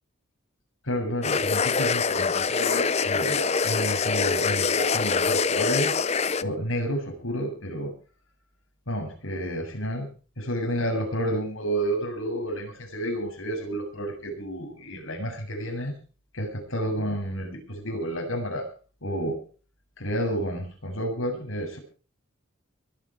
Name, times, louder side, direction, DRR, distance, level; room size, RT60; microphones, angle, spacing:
voice 1, 0.8-5.9 6.4-7.9 8.9-10.1 10.4-15.9 16.3-18.6 19.0-19.4 20.0-21.8, equal, 75° left, 3 dB, 7.7 m, -30 dB
sound 1, 1.2-6.4, left 5 dB, 30° left, 0.7 m, -24 dB
23.5 x 9.9 x 4.7 m, 0.38 s
head